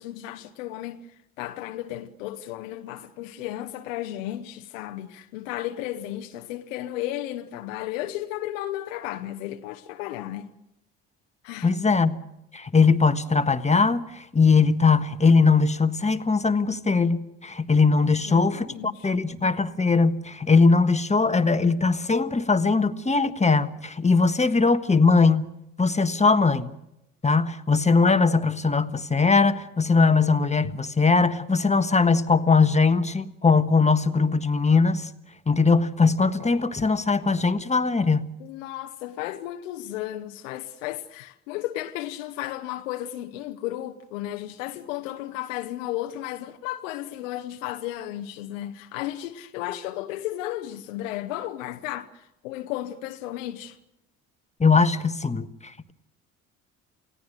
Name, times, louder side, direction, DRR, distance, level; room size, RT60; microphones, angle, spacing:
voice 1, 0.0-10.5 11.4-11.7 18.0-19.1 38.4-53.8, left 14 dB, 75° left, 1.1 m, -34 dB
voice 2, 11.6-12.2 12.5-25.5 25.8-26.7 27.2-35.1 35.5-38.3 54.6-55.9, left 4 dB, 15° left, 1.5 m, -20 dB
28.5 x 17.0 x 6.5 m
hypercardioid pair, 55°, 38 cm